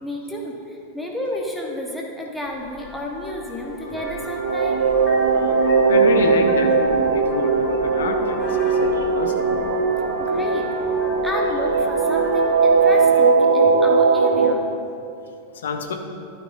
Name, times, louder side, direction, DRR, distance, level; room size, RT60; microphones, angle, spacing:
voice 1, 0.0-4.8 5.5-5.6 10.2-10.7 11.2-14.6, left 1 dB, ahead, -2 dB, 1.2 m, -31 dB
Vehicle horn car horn honking, 2.4-13.1, left 2 dB, 25° left, 1.5 m, -37 dB
sound 1, 3.9-14.5, right 4 dB, 65° right, 0.5 m, -19 dB
voice 2, 5.8-9.5 15.6-15.9, left 3 dB, 65° left, 5 dB, 0.9 m, -27 dB
13.0 x 9.2 x 2.6 m, 2.5 s
figure-of-eight pair, 90°, 0 cm